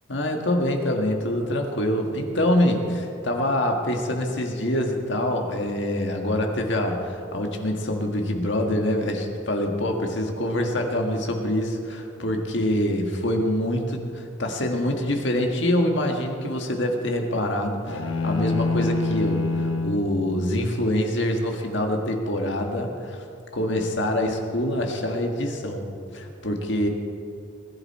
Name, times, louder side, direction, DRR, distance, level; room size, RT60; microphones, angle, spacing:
voice 1, 0.1-23.2 23.5-26.9, left 1 dB, 65° left, 2 dB, 1.8 m, -25 dB
sound 1, 17.9-20.1, left 3 dB, 85° left, 1.0 m, -25 dB
21.0 x 11.0 x 4.3 m, 2.6 s
head